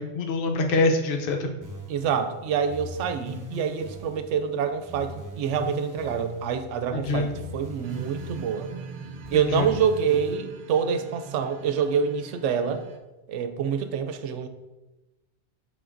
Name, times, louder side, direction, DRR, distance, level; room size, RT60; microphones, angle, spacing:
voice 1, 0.0-1.5 6.9-7.3 9.3-9.7, left 2 dB, 55° left, 3 dB, 0.8 m, -25 dB
sound 1, 1.6-10.3, left 1 dB, 20° right, 0.8 m, -41 dB
voice 2, 1.9-8.7 9.3-12.8 13.3-14.5, right 7 dB, 85° right, 9 dB, 0.9 m, -26 dB
sound 2, 7.8-13.0, right 6 dB, 55° right, 0.6 m, -42 dB
10.5 x 3.8 x 2.5 m, 1.1 s
omnidirectional pair, 1.2 m